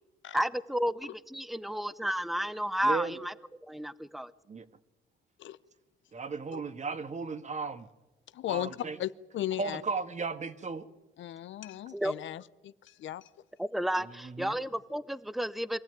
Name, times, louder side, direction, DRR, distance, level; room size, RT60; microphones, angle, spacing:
voice 1, 0.3-3.3 3.7-4.3 11.9-12.2 13.6-15.8, equal, ahead, 0.8 m, -32 dB
voice 2, 2.8-3.1 4.5-4.6 6.1-7.9 8.5-9.0 9.6-10.9 14.2-14.6, right 4 dB, 35° right, 1.6 m, -35 dB
voice 3, 8.3-9.8 11.2-13.3, left 12 dB, 75° left, 0.8 m, -37 dB
23.5 x 15.0 x 9.2 m
cardioid pair, 90°, 20 cm